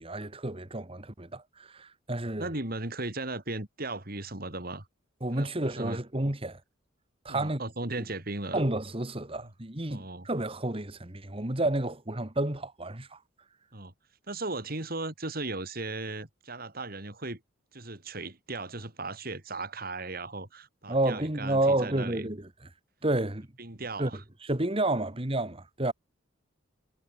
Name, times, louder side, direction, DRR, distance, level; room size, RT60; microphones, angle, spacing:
voice 1, 0.0-2.5 5.2-6.6 7.3-7.6 8.0-8.1 8.5-13.2 20.9-22.5 23.0-23.5 24.0-24.1 24.4-25.9, right 1 dB, 30° right, 1.9 m, -30 dB
voice 2, 2.4-4.9 5.3-5.5 5.8-6.0 7.3-8.6 9.9-10.3 13.7-13.9 14.3-17.4 17.7-22.3 23.6-24.2, right 2 dB, 50° right, 3.8 m, -37 dB
head